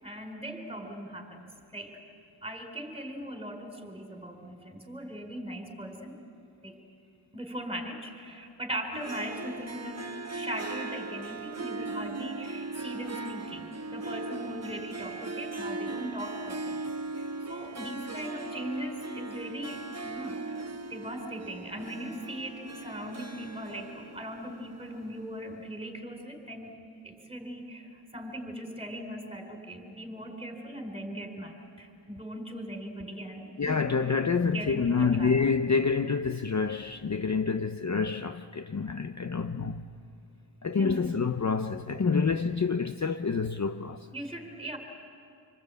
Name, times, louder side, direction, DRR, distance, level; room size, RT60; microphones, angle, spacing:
voice 1, 0.0-2.0 2.4-6.2 6.6-6.8 7.3-10.1 10.3-20.6 20.9-26.8 27.0-34.1 34.4-35.3 40.7-41.1 44.1-44.8, equal, 10° right, 4.0 m, -39 dB
Harp, 8.9-25.4, right 3 dB, 35° right, 1.1 m, -39 dB
voice 2, 33.6-39.8 40.6-44.1, left 5 dB, 40° left, 0.7 m, -27 dB
27.0 x 25.0 x 8.4 m
wide cardioid pair, 115°, 46 cm